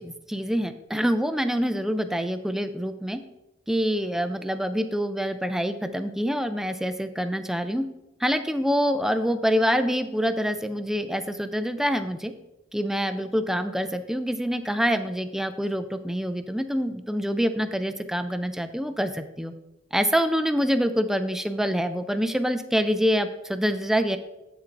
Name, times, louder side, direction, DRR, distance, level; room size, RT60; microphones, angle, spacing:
voice 1, 0.0-3.2 3.7-7.9 8.2-12.3 12.7-19.5 19.9-24.2, equal, ahead, 9 dB, 0.3 m, -26 dB
8.4 x 7.4 x 2.5 m, 0.97 s
head